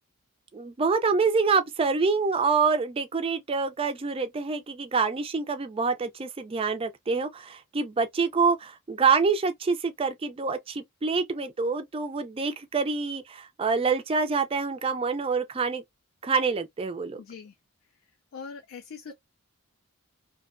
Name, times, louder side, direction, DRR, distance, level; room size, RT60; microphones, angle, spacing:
voice 1, 0.5-15.8 16.2-17.2, right 4 dB, 25° right, 0.3 m, -26 dB
voice 2, 17.2-17.5 18.3-19.1, left 5 dB, 60° left, 0.3 m, -41 dB
2.6 x 2.0 x 2.4 m
head